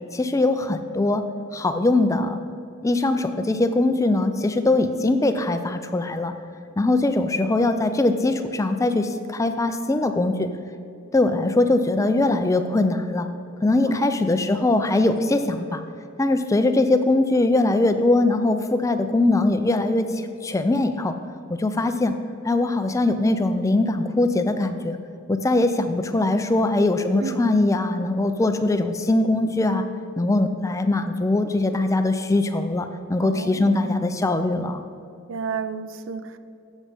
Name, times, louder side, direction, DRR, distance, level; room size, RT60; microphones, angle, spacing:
voice 1, 0.1-1.2 1.5-2.4 2.8-6.3 6.8-10.5 11.1-13.3 13.6-15.8 16.2-21.1 21.5-22.1 22.4-25.0 25.3-29.8 30.2-34.8, left 2 dB, 15° left, 0.3 m, -21 dB
voice 2, 13.9-14.4 27.2-27.5 33.2-34.0 35.3-36.4, right 5 dB, 60° right, 0.4 m, -32 dB
7.4 x 7.1 x 5.3 m
head